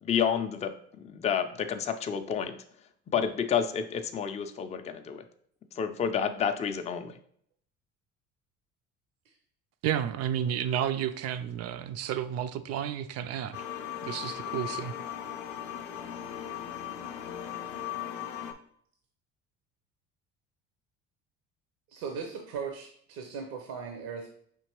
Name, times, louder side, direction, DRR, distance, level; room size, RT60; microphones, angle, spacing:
voice 1, 0.0-2.6 3.1-5.2 5.8-7.2, left 7 dB, 20° left, 7 dB, 0.4 m, -30 dB
voice 2, 9.8-13.6 14.0-14.9, right 9 dB, 45° right, 11 dB, 0.4 m, -31 dB
sound 1, 13.5-18.5, left 10 dB, 90° left, 0.5 m, -38 dB
voice 3, 21.9-24.3, right 6 dB, 65° right, 3 dB, 0.8 m, -38 dB
5.1 x 2.8 x 2.9 m, 0.64 s
hypercardioid pair, 60°, 37 cm